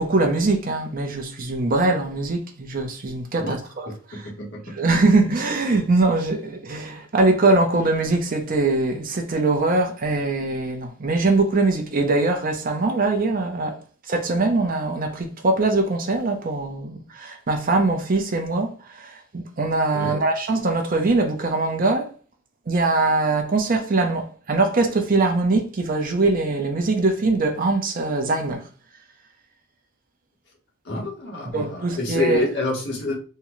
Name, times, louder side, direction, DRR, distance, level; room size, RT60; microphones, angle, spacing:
voice 1, 0.0-4.3 4.7-13.8 14.1-22.1 22.7-28.6 31.5-32.4, right 3 dB, 40° right, 0.6 m, -22 dB
voice 2, 3.9-4.7 19.9-20.1 30.8-33.1, left 2 dB, 55° left, 1.2 m, -28 dB
3.7 x 2.2 x 2.9 m
head